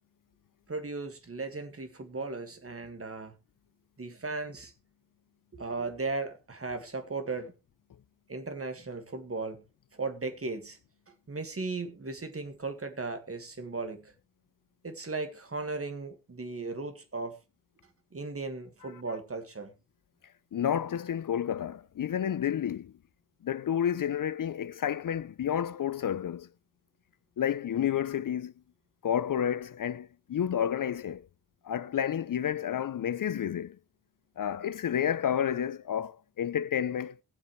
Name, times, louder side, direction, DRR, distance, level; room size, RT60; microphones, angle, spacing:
voice 1, 0.7-3.3 4.0-4.7 5.5-7.5 8.3-9.6 9.9-10.8 11.3-14.1 14.8-17.4 18.1-19.7, right 3 dB, 35° right, 1.8 m, -36 dB
voice 2, 20.5-22.9 23.4-26.5 27.4-28.5 29.0-31.3 31.6-33.8 34.4-37.2, left 9 dB, 60° left, 0.5 m, -30 dB
20.5 x 7.6 x 3.1 m
wide cardioid pair, 125°, 37 cm